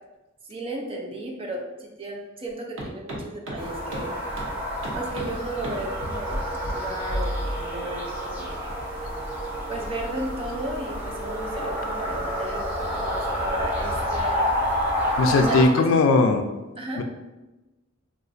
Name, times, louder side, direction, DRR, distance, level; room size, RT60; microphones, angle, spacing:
voice 1, 0.5-4.2 4.9-8.6 9.7-14.4 15.3-15.9 16.8-17.0, right 1 dB, 30° right, 0 dB, 0.5 m, -34 dB
sound 1, 2.8-2.9 3.1-3.2 3.5-3.6 3.9-4.0 4.4-4.5 4.8-5.2 5.6-5.7 6.0-6.4 6.6-6.7 7.1-7.6, equal, 80° right, 0.8 m, -30 dB
sound 2, 3.6-15.6, equal, 10° right, 0.8 m, -29 dB
voice 2, 15.2-16.5 17.0-17.1, left 3 dB, 80° left, 6 dB, 0.4 m, -19 dB
2.4 x 2.4 x 3.8 m, 1.1 s
head